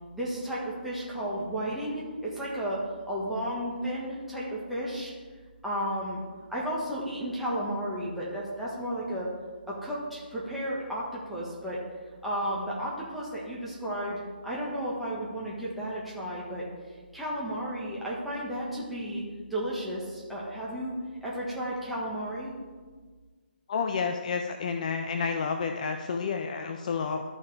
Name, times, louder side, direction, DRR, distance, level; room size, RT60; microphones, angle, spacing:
voice 1, 0.1-5.1 5.6-6.2 6.5-9.3 9.7-11.8 12.2-16.7 17.1-19.2 19.5-20.9 21.2-22.5, equal, ahead, -8 dB, 1.5 m, -33 dB
voice 2, 23.7-27.2, left 5 dB, 45° left, 5 dB, 0.6 m, -30 dB
13.0 x 5.7 x 3.5 m, 1.4 s
hypercardioid pair, 155°, 6 cm